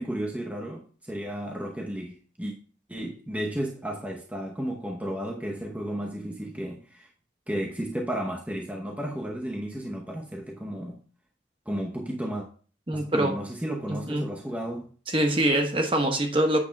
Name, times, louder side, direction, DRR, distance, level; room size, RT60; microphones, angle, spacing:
voice 1, 0.0-2.6 2.9-7.1 7.5-11.0 11.7-12.5 12.9-14.9, equal, 10° right, 0.8 m, -33 dB
voice 2, 12.9-13.3 13.9-14.3 15.1-16.6, right 1 dB, 30° right, 1.1 m, -24 dB
8.6 x 3.5 x 5.8 m
head